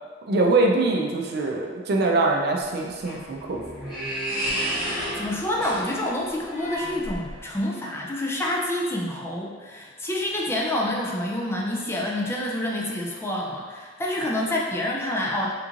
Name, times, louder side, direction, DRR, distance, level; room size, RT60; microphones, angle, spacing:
voice 1, 0.3-3.6, right 2 dB, 55° right, 0 dB, 0.4 m, -23 dB
sound 1, 2.8-7.6, equal, 5° right, 1.3 m, -32 dB
voice 2, 4.7-15.5, left 1 dB, 15° left, -3 dB, 0.3 m, -28 dB
3.6 x 3.0 x 2.5 m, 1.5 s
head